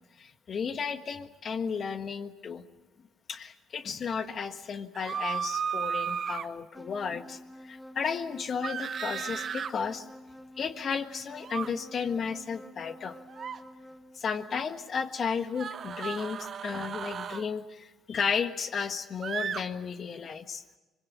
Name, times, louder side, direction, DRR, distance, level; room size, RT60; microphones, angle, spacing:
voice 1, 0.2-2.6 3.3-10.1 10.6-13.2 14.1-20.6, left 6 dB, 50° left, 9 dB, 1.6 m, -33 dB
sound 1, 4.9-6.5 8.6-9.7 11.4-11.7 13.3-13.6 15.5-17.5 19.2-19.6, right 7 dB, 50° right, 1.1 m, -34 dB
sound 2, 6.7-14.2, equal, 5° left, 1.2 m, -49 dB
24.0 x 23.0 x 8.3 m, 1.1 s
hypercardioid pair, 55°, 0 cm